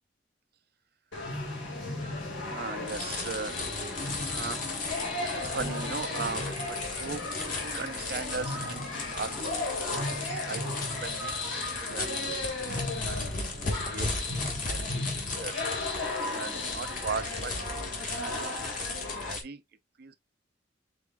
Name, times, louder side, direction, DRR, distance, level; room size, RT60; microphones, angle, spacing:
sound 1, 1.1-19.3, left 2 dB, 70° left, 2.0 m, -35 dB
voice 1, 2.4-3.6 4.3-4.7 5.2-7.2 7.6-12.3 12.6-15.1 15.3-15.6 16.0-19.6 20.0-20.2, right 4 dB, 50° right, 0.5 m, -39 dB
sound 2, 2.9-19.4, left 3 dB, 40° left, 1.5 m, -36 dB
4.8 x 4.1 x 2.3 m
head